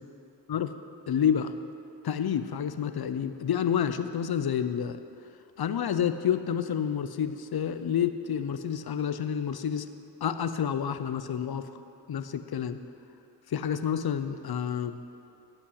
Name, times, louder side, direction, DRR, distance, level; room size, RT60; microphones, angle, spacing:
voice 1, 1.1-1.5 2.0-5.0 5.6-9.9 10.2-11.7 12.1-12.8 13.5-15.0, left 8 dB, 55° left, 10 dB, 0.7 m, -29 dB
11.5 x 5.2 x 8.1 m, 2.7 s
cardioid pair, 45°, 45 cm